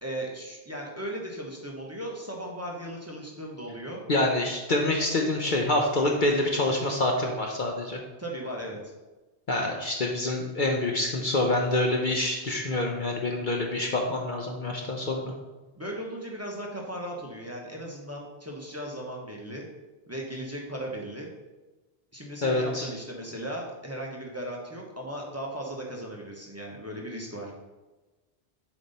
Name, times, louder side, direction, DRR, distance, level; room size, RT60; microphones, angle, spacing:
voice 1, 0.0-4.0 8.2-8.8 15.8-19.7 20.1-21.3 22.1-27.5, right 1 dB, 15° right, -2 dB, 1.1 m, -37 dB
voice 2, 4.1-8.0 9.5-15.3 22.4-22.9, left 2 dB, 50° left, 1 dB, 0.9 m, -26 dB
7.4 x 5.2 x 4.1 m, 1.1 s
omnidirectional pair, 1.2 m